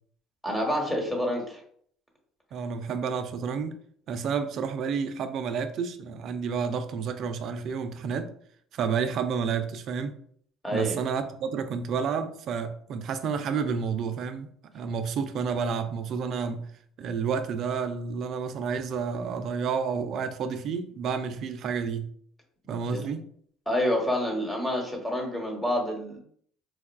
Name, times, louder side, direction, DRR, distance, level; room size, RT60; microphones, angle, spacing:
voice 1, 0.4-1.6 10.6-11.0 22.9-23.0 23.7-26.2, left 1 dB, 10° left, 0 dB, 1.1 m, -28 dB
voice 2, 2.5-3.8 4.1-8.3 8.7-10.2 10.7-16.7 17.0-22.1 22.7-23.3, right 6 dB, 60° right, 9 dB, 0.4 m, -30 dB
4.0 x 2.3 x 2.2 m, 0.62 s
supercardioid pair, 75°, 0 cm